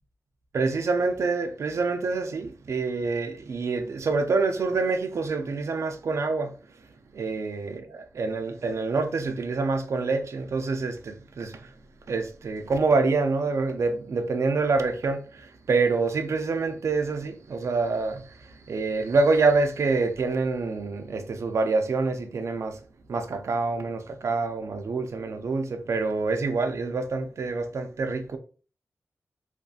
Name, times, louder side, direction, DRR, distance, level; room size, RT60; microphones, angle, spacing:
voice 1, 0.5-6.6 7.1-11.7 12.1-22.8 23.1-28.4, right 3 dB, 65° right, 0.4 m, -26 dB
2.6 x 2.4 x 2.3 m
wide cardioid pair, 90°, 5 cm